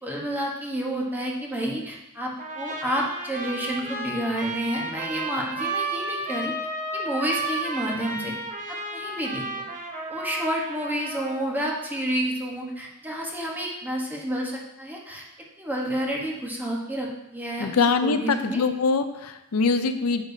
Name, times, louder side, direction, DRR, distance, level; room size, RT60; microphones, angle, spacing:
voice 1, 0.0-6.5 6.9-8.3 8.7-9.6 10.1-15.2 15.6-17.7 18.0-18.6, right 1 dB, 10° right, -2 dB, 1.1 m, -30 dB
Trumpet, 2.4-11.5, right 2 dB, 35° right, 0.8 m, -33 dB
voice 2, 17.6-20.2, left 4 dB, 85° left, 9 dB, 0.6 m, -23 dB
8.8 x 6.6 x 2.7 m, 0.92 s
head